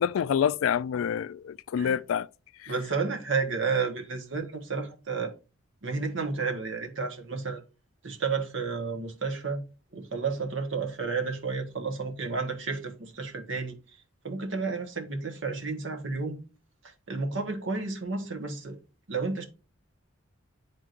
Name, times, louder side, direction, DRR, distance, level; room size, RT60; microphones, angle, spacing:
voice 1, 0.0-2.3 2.6-2.7, left 8 dB, 75° left, 0.3 m, -27 dB
voice 2, 2.7-5.3 5.8-7.6 8.0-9.6 9.9-13.7 14.2-16.4 17.1-18.8 19.1-19.5, right 4 dB, 65° right, 1.1 m, -31 dB
10.5 x 3.6 x 2.5 m
head